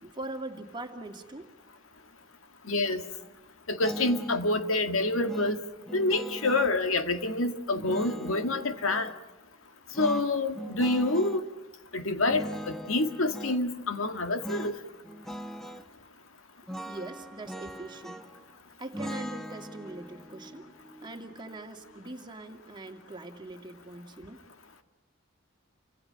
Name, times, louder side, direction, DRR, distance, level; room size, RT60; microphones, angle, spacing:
voice 1, 0.0-1.5 16.9-18.2 18.8-20.7 21.0-24.4, right 2 dB, 20° right, 4 dB, 2.2 m, -42 dB
voice 2, 2.7-3.0 3.7-5.6 5.9-9.1 10.0-11.4 11.9-14.7, left 2 dB, 85° left, 7 dB, 1.9 m, -27 dB
sound 1, 3.8-4.5 5.3-6.8 7.8-9.2 9.9-11.4 12.3-13.6 14.4-14.8 15.0-15.9 16.7-18.4 18.9-22.0, equal, ahead, 1.1 m, -40 dB
29.5 x 25.5 x 5.8 m, 1.1 s
head